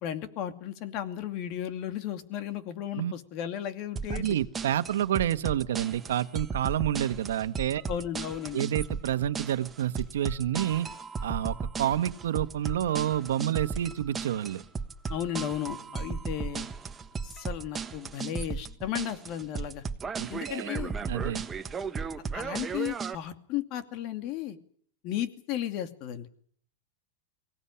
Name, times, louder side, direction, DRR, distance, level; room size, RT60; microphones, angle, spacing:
voice 1, 0.0-4.4 7.9-8.6 15.1-16.7 17.2-19.8 20.3-20.9 22.3-24.6 25.0-26.3, left 11 dB, 50° left, 9 dB, 2.5 m, -34 dB
sound 1, 4.0-23.2, right 5 dB, 20° right, 1.3 m, -36 dB
voice 2, 4.1-7.8 8.5-10.9 11.2-14.6 20.2-20.7 21.1-21.4, right 11 dB, 85° right, 10 dB, 1.3 m, -29 dB
23.5 x 17.5 x 9.9 m, 0.62 s
supercardioid pair, 130°, 0 cm